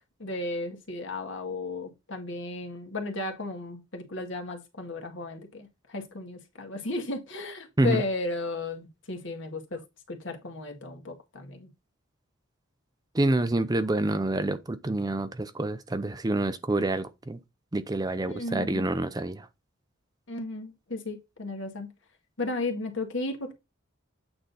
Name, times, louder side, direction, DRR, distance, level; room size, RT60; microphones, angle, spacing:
voice 1, 0.2-9.8 10.1-11.7 18.3-18.8 20.3-21.9 22.4-23.5, left 2 dB, 60° left, 2.0 m, -34 dB
voice 2, 13.1-17.4 17.7-19.5, right 2 dB, 20° right, 0.5 m, -27 dB
8.8 x 3.8 x 3.9 m
head